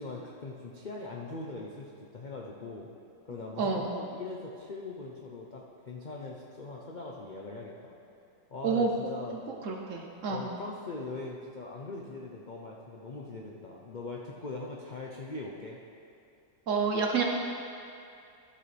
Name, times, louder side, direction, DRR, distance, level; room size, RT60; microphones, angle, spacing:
voice 1, 0.0-2.9 3.2-8.0 8.5-9.4 10.3-15.8, left 3 dB, 70° left, -2 dB, 0.4 m, -41 dB
voice 2, 3.6-4.0 8.6-8.9 9.6-10.4 16.7-17.2, right 5 dB, 55° right, 1 dB, 1.0 m, -28 dB
13.0 x 7.6 x 3.3 m, 2.5 s
omnidirectional pair, 1.9 m